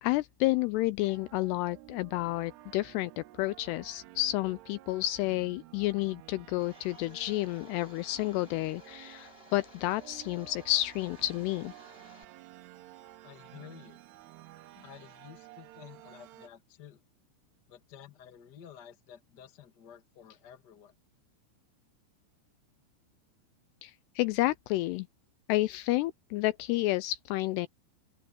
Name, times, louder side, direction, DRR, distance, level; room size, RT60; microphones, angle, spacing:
voice 1, 0.0-11.7 23.8-25.1 25.5-27.7, left 17 dB, 85° left, 2.4 m, -30 dB
sound 1, 1.1-16.5, right 17 dB, 75° right, 2.7 m, -53 dB
Domestic sounds home sounds, 6.6-12.2, left 1 dB, 15° left, 3.3 m, -56 dB
voice 2, 13.2-14.0 14.7-17.0 17.7-20.9, left 9 dB, 65° left, 1.0 m, -52 dB
open air
omnidirectional pair, 5.2 m